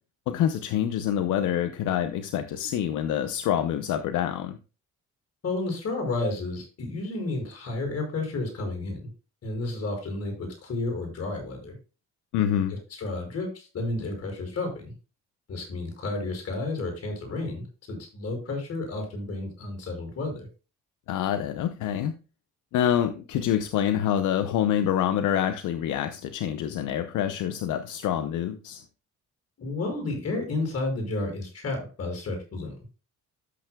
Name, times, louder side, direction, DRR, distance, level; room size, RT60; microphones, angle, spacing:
voice 1, 0.3-4.6 12.3-12.8 21.1-22.1 22.7-28.8, left 10 dB, 85° left, 9 dB, 0.7 m, -26 dB
voice 2, 5.4-9.1 9.4-11.8 12.7-14.9 15.5-20.5 29.6-32.8, left 2 dB, 55° left, 1 dB, 5.4 m, -31 dB
13.5 x 6.6 x 2.2 m, 0.33 s
cardioid pair, 90°, 30 cm